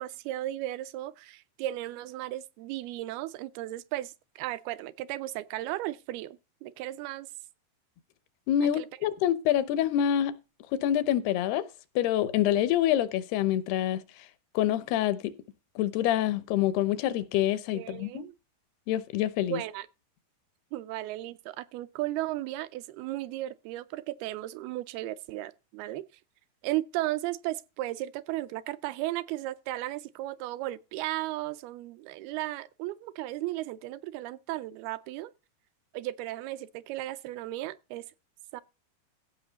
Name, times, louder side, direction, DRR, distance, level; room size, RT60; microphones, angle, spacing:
voice 1, 0.0-7.3 8.7-8.9 17.7-18.3 19.5-19.9 20.7-26.1 26.6-35.3 35.9-38.1 38.5-38.6, right 16 dB, 80° right, 2.5 m, -35 dB
voice 2, 8.5-10.4 10.7-11.7 12.0-14.3 14.5-15.3 15.8-18.2 18.9-19.6, left 11 dB, 80° left, 2.9 m, -26 dB
15.5 x 5.7 x 4.0 m
omnidirectional pair, 4.6 m